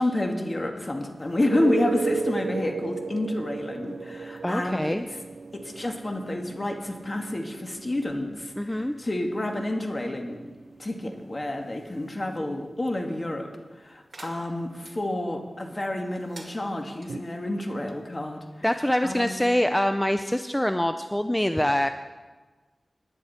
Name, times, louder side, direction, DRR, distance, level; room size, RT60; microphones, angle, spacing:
voice 1, 0.0-5.2 5.6-10.5 10.8-18.7 19.0-19.4, left 1 dB, 40° left, 3 dB, 2.0 m, -29 dB
sound 1, 1.3-12.8 17.1-17.2, right 4 dB, 85° right, 0.4 m, -35 dB
voice 2, 4.4-5.1 8.6-9.0 18.6-21.9, left 1 dB, 15° left, 8 dB, 0.6 m, -24 dB
Metal Door Shut, 14.1-15.0 16.2-17.1, right 2 dB, 65° right, 1.9 m, -47 dB
19.0 x 10.5 x 4.4 m, 1.3 s
cardioid pair, 40°, 0 cm